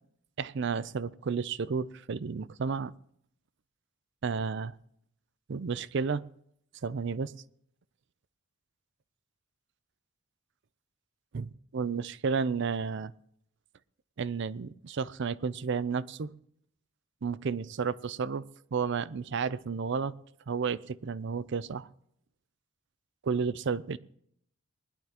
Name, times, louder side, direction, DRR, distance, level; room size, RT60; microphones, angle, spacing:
voice 1, 0.4-2.9 4.2-4.7 5.5-6.2 6.8-7.3 11.3-13.1 14.2-16.3 17.2-18.4 18.7-20.1 20.5-21.9 23.2-24.0, right 5 dB, 60° right, 17 dB, 0.5 m, -32 dB
20.0 x 11.5 x 2.9 m, 0.69 s
head